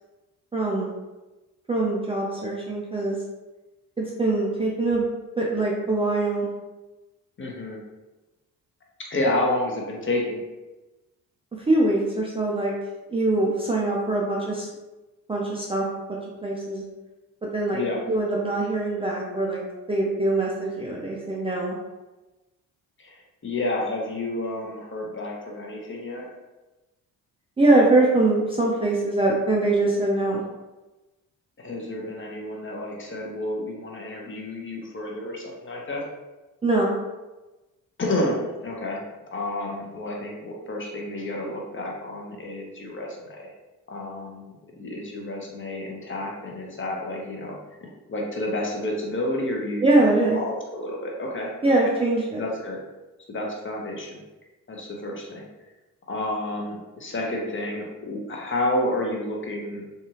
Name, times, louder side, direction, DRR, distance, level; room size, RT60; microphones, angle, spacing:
voice 1, 0.5-0.9 1.7-3.2 4.0-5.0 5.4-6.5 11.7-12.7 13.1-14.7 15.3-15.8 16.4-16.8 17.5-17.8 18.1-19.6 19.9-21.8 27.6-30.4 36.6-36.9 49.8-50.4 51.6-52.4, right 2 dB, 15° right, -4 dB, 0.5 m, -23 dB
voice 2, 7.4-7.8 9.0-10.4 17.7-18.1 23.0-26.2 31.6-36.0 38.0-39.0 39.3-43.5 43.9-51.5 51.8-51.9 52.3-52.8 53.3-54.2 54.7-55.5 56.1-59.8, left 1 dB, 30° left, -1 dB, 0.8 m, -30 dB
2.7 x 2.3 x 2.8 m, 1.1 s
hypercardioid pair, 45°, 42 cm